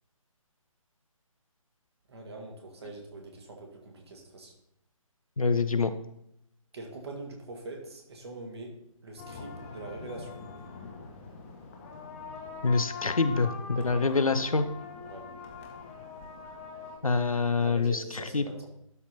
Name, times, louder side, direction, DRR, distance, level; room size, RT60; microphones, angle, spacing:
voice 1, 2.1-4.5 6.7-8.8 9.0-10.4 13.9-14.1 15.1-15.3 17.6-18.7, right 2 dB, 50° right, 1 dB, 2.1 m, -43 dB
voice 2, 5.4-5.9 12.6-14.7 17.0-18.0 18.3-18.5, left 4 dB, 75° left, 10 dB, 0.8 m, -25 dB
sound 1, 9.2-17.0, left 4 dB, 25° left, 1.3 m, -43 dB
12.0 x 4.4 x 4.2 m, 0.79 s
figure-of-eight pair, 140°, 18 cm